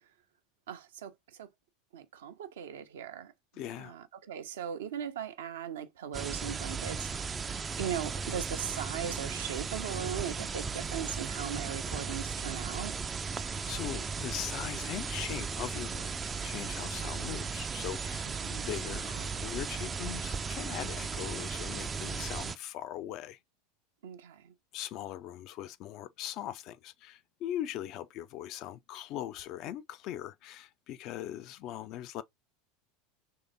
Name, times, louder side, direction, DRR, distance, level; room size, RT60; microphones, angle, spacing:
voice 1, 0.7-1.5 1.9-3.3 3.8-7.3 7.8-12.9 18.4-18.7 24.0-24.5, right 9 dB, 65° right, 0.6 m, -39 dB
voice 2, 3.5-4.0 13.3-16.2 16.4-23.4 24.7-32.2, left 12 dB, 45° left, 0.4 m, -40 dB
sound 1, 6.1-22.6, right 5 dB, 20° right, 0.4 m, -36 dB
3.2 x 2.8 x 3.9 m
figure-of-eight pair, 80°, 0 cm